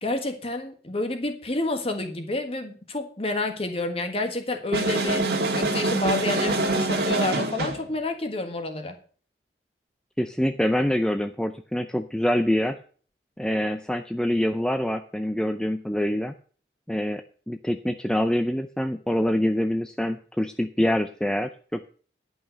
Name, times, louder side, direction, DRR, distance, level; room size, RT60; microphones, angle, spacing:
voice 1, 0.0-5.3 5.5-9.0, left 2 dB, 35° left, 7 dB, 1.5 m, -29 dB
sound 1, 4.7-7.9, right 2 dB, 60° right, 1.9 m, -25 dB
voice 2, 10.2-12.8 13.4-16.3 16.9-21.8, left 1 dB, 5° left, 8 dB, 0.4 m, -25 dB
11.0 x 5.6 x 7.6 m, 0.43 s
head